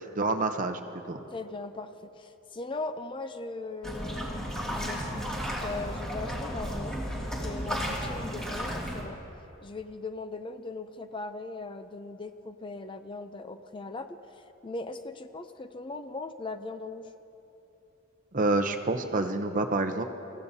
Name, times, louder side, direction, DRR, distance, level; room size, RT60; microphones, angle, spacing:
voice 1, 0.1-0.8 1.1-1.2 18.3-20.0, right 2 dB, 40° right, 7 dB, 0.7 m, -27 dB
voice 2, 1.3-9.2 9.6-17.1, left 3 dB, 25° left, 9 dB, 0.5 m, -39 dB
sound 1, 3.8-9.0, equal, 5° left, 2.3 m, -33 dB
26.0 x 15.5 x 2.8 m, 2.9 s
head